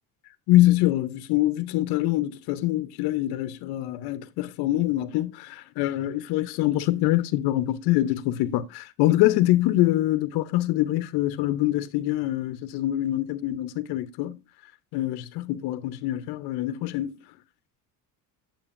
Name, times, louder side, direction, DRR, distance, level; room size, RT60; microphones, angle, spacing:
voice 1, 0.5-14.4 14.9-17.2, left 15 dB, 80° left, 0.7 m, -24 dB
8.7 x 7.7 x 2.5 m
cardioid pair, 160°, 38 cm